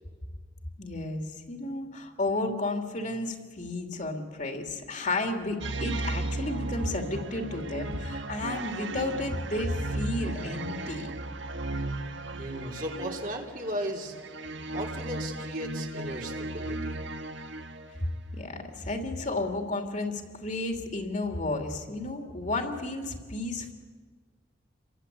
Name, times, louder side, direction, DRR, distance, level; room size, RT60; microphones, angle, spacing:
voice 1, 0.8-11.1 18.3-23.7, left 2 dB, 40° left, 4 dB, 2.9 m, -32 dB
sound 1, 5.6-18.1, right 2 dB, 70° right, 1.5 m, -35 dB
voice 2, 12.4-14.2 14.7-17.0, equal, 45° right, 1 dB, 3.4 m, -36 dB
29.0 x 23.5 x 8.4 m, 1.5 s
head